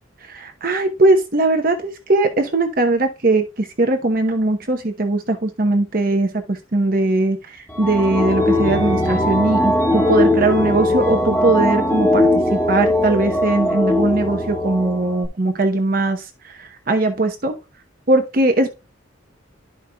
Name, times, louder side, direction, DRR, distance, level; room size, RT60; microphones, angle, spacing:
voice 1, 0.2-17.5 18.1-18.7, right 2 dB, 45° right, 5 dB, 0.9 m, -20 dB
sound 1, 7.7-15.3, left 1 dB, 10° left, 1.3 m, -19 dB
12.0 x 5.3 x 2.3 m, 0.28 s
head